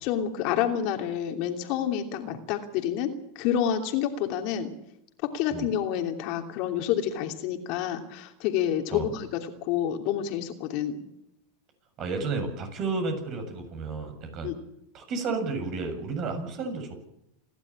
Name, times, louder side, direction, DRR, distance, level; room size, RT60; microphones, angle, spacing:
voice 1, 0.0-4.7 5.2-11.0 14.4-14.5, left 9 dB, 55° left, 5 dB, 2.9 m, -28 dB
voice 2, 12.0-14.5 14.9-17.0, right 4 dB, 45° right, 6 dB, 7.4 m, -32 dB
28.0 x 12.0 x 8.7 m, 0.79 s
hypercardioid pair, 110°, 0 cm